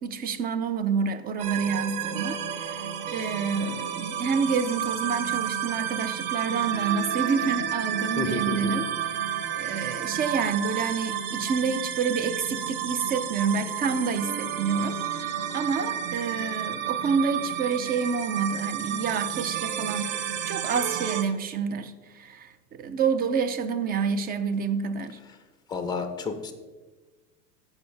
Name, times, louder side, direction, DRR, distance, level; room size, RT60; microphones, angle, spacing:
voice 1, 0.0-8.9 9.6-20.1 20.5-25.2, right 5 dB, 20° right, 11 dB, 0.5 m, -28 dB
sound 1, 1.4-21.2, right 9 dB, 45° right, 1.0 m, -31 dB
voice 2, 8.1-8.7 25.7-26.5, left 4 dB, 10° left, 7 dB, 0.8 m, -31 dB
14.5 x 5.7 x 3.4 m, 1.3 s
hypercardioid pair, 100°, 48 cm